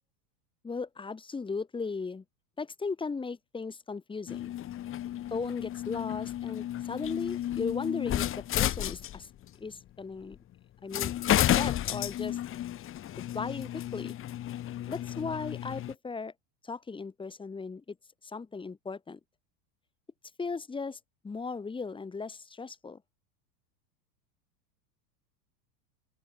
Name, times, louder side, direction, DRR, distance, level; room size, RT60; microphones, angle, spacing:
voice 1, 0.6-2.2 2.6-4.5 5.3-9.3 9.6-10.4 10.8-12.4 13.3-14.2 14.9-16.3 16.6-18.0 18.2-19.2 20.4-21.0 21.2-23.0, left 4 dB, 10° left, 5.1 m, -37 dB
sound 1, 4.3-9.5 10.3-10.4 10.9-15.9, left 12 dB, 25° left, 2.9 m, -32 dB
open air
supercardioid pair, 160°, 50 cm